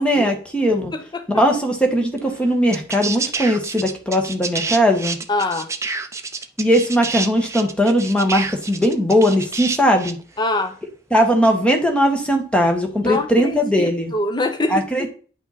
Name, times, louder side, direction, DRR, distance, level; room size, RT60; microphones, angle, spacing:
voice 1, 0.0-0.9 1.3-5.2 6.6-10.2 11.1-14.1 14.7-15.1, equal, 5° left, 1.4 m, -19 dB
sound 1, 2.2-2.3 2.7-10.2 11.4-11.5, right 4 dB, 15° right, 0.6 m, -28 dB
voice 2, 5.3-5.7 10.4-10.8 13.0-14.8, left 2 dB, 25° left, 0.9 m, -24 dB
9.8 x 5.7 x 4.2 m
head